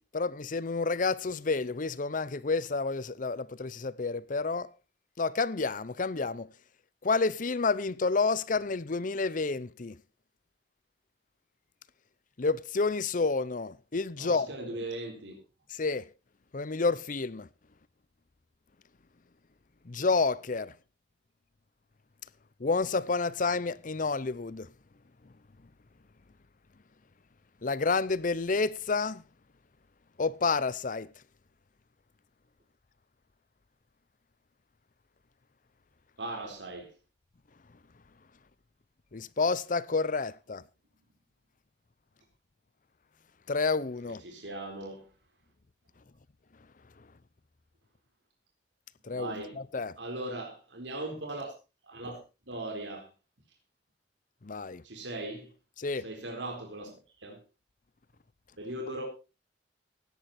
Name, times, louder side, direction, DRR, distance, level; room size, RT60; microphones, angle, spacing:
voice 1, 0.1-4.7 5.2-6.5 7.0-10.0 12.4-14.5 15.7-16.0 16.5-17.5 19.9-20.7 22.6-24.7 27.6-29.2 30.2-31.1 39.1-40.6 43.5-44.2 49.0-50.0 54.4-54.8 55.8-56.1, left 4 dB, 45° left, 0.7 m, -29 dB
voice 2, 14.2-15.3 36.2-36.9 44.0-45.1 49.1-49.6 50.0-51.5 51.8-52.2 52.5-53.1 54.8-55.5 56.0-56.9 57.2-57.4 58.6-59.0, right 2 dB, 85° right, 4.0 m, -38 dB
16.5 x 11.0 x 4.3 m
head